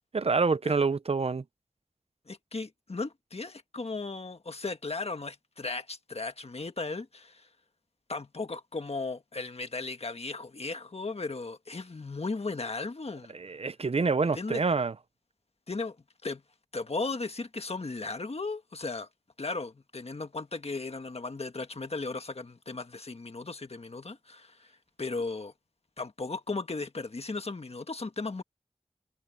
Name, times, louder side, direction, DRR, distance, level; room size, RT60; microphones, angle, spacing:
voice 1, 0.1-1.4 13.3-14.9, right 4 dB, 60° right, 0.6 m, -27 dB
voice 2, 2.3-7.5 8.1-13.4 14.3-14.6 15.7-16.0 16.2-16.4 16.7-19.1 19.4-24.7 25.0-25.5 26.0-28.4, left 3 dB, 60° left, 1.6 m, -36 dB
wide cardioid pair, 45°, 12 cm